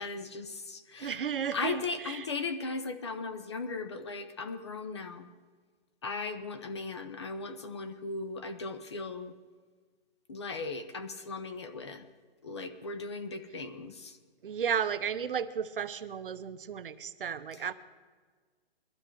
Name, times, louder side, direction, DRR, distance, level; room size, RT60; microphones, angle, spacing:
voice 1, 0.0-1.2 1.5-5.3 6.0-9.3 10.3-12.0 12.4-14.2, left 4 dB, 25° left, 10 dB, 0.6 m, -37 dB
voice 2, 1.0-2.3 14.4-17.7, right 7 dB, 60° right, 11 dB, 0.9 m, -34 dB
21.5 x 12.5 x 4.5 m, 1.5 s
hypercardioid pair, 165°, 31 cm